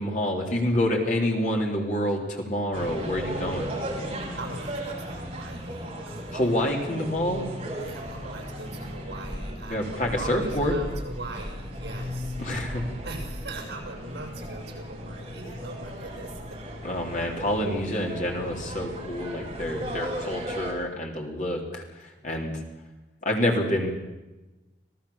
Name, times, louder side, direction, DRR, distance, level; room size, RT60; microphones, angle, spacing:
voice 1, 0.0-3.7 6.3-7.5 9.7-10.7 12.4-13.0 16.8-22.6 23.2-23.9, left 1 dB, 45° left, 1 dB, 3.7 m, -27 dB
sound 1, 2.7-20.7, equal, 30° right, 5.4 m, -36 dB
voice 2, 4.4-6.4 7.8-12.4 13.0-16.6 21.4-21.5, right 2 dB, 65° right, 2 dB, 6.8 m, -40 dB
26.5 x 18.0 x 7.2 m, 1.1 s
head